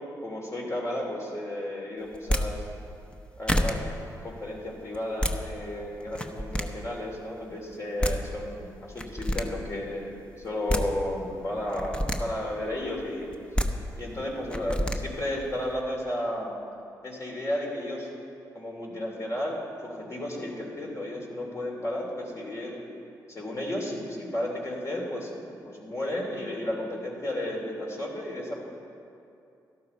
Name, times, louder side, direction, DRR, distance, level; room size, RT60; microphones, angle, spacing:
voice 1, 0.2-2.6 3.4-3.8 4.2-10.1 10.4-13.3 14.0-16.5 17.0-18.1 18.5-22.8 23.3-28.5, left 1 dB, 40° left, -1 dB, 3.1 m, -33 dB
sound 1, 2.1-2.4 3.1-3.2 3.5-3.7 4.9-5.3 6.1-6.6 7.7-7.8 8.0-8.1 9.0-9.4 10.4-10.8 11.7-12.2 13.3-13.7 14.5-15.0, equal, 15° left, 0.9 m, -26 dB
12.5 x 12.0 x 4.5 m, 2.6 s
cardioid pair, 65°, 8 cm